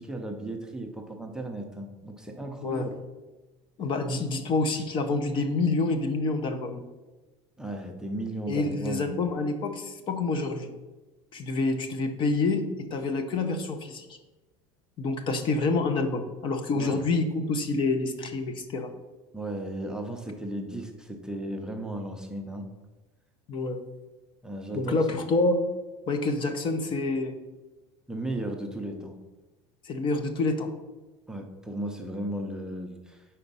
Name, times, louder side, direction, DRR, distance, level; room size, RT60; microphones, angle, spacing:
voice 1, 0.0-2.9 7.6-9.2 16.7-17.0 19.3-22.7 24.4-25.2 28.1-29.1 31.3-33.3, right 1 dB, 5° right, 2 dB, 0.5 m, -35 dB
voice 2, 3.8-6.8 8.5-10.7 11.3-14.2 15.0-18.9 23.5-23.8 24.7-25.7 26.1-27.4 29.8-30.7, left 3 dB, 35° left, 8 dB, 0.6 m, -27 dB
5.0 x 4.3 x 5.4 m, 1.2 s
cardioid pair, 140°, 14 cm